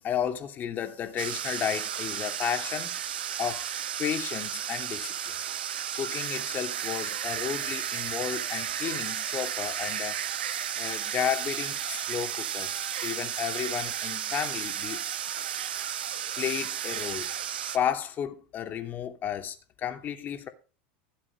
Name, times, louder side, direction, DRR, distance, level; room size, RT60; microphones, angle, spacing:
voice 1, 0.0-3.0 3.4-3.7 4.0-5.4 5.9-10.2 10.8-15.0 16.4-17.3 17.7-20.5, left 9 dB, 35° left, 2.9 m, -33 dB
sound 1, 1.2-17.8, right 10 dB, 90° right, 1.6 m, -33 dB
16.5 x 7.6 x 5.3 m
hypercardioid pair, 110°, 5 cm